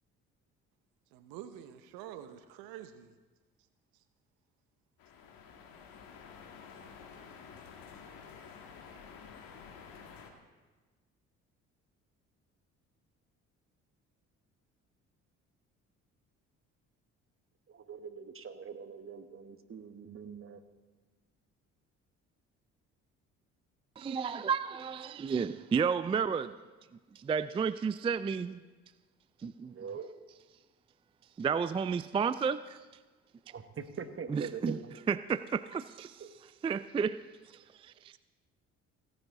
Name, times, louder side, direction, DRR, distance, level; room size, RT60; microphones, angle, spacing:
voice 1, 1.1-3.1, right 11 dB, 80° right, 11 dB, 0.8 m, -47 dB
sound 1, 5.0-10.3, left 6 dB, 75° left, 1.6 m, -51 dB
voice 2, 17.7-20.6 29.6-30.1 33.5-35.0 36.2-36.3, right 6 dB, 35° right, 9 dB, 1.2 m, -43 dB
voice 3, 24.0-26.6 27.2-28.6 29.4-29.7 31.4-32.8 34.3-34.8 35.1-36.2 36.6-37.2 37.5-38.2, right 6 dB, 15° right, 15 dB, 0.3 m, -32 dB
16.5 x 9.8 x 3.9 m, 1.3 s
hypercardioid pair, 55°, 35 cm